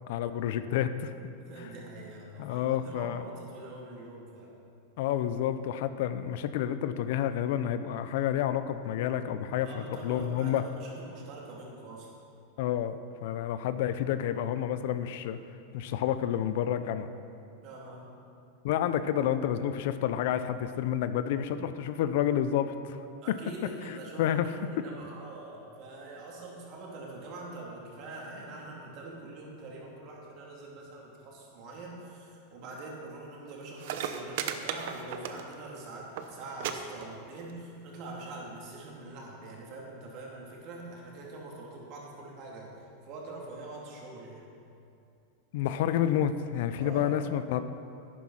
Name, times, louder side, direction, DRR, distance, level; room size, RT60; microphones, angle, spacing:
voice 1, 0.1-1.1 2.4-3.2 5.0-10.6 12.6-15.4 15.7-17.1 18.6-23.0 24.2-24.7 45.5-47.6, left 10 dB, 65° left, 11 dB, 0.6 m, -29 dB
voice 2, 1.4-4.5 9.6-12.1 17.6-18.0 23.2-44.4 46.8-47.3, right 2 dB, 45° right, -3 dB, 3.1 m, -44 dB
sound 1, 33.5-33.6 33.8-35.7 36.0-36.3 36.6-36.7 37.0-37.5 38.3-38.4, right 9 dB, 65° right, 0.8 m, -35 dB
11.0 x 9.4 x 5.8 m, 2.6 s
supercardioid pair, 130°, 0 cm